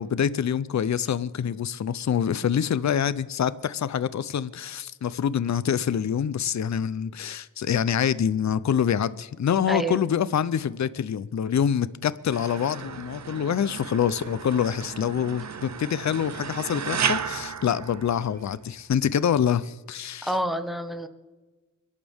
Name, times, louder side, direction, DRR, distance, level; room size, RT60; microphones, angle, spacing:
voice 1, 0.0-20.3, left 8 dB, 55° left, 0.6 m, -26 dB
voice 2, 9.7-10.0 20.2-21.1, right 1 dB, ahead, 1.4 m, -28 dB
sound 1, 12.3-18.6, right 6 dB, 55° right, 0.8 m, -33 dB
29.5 x 11.5 x 3.5 m
wide cardioid pair, 85°, 33 cm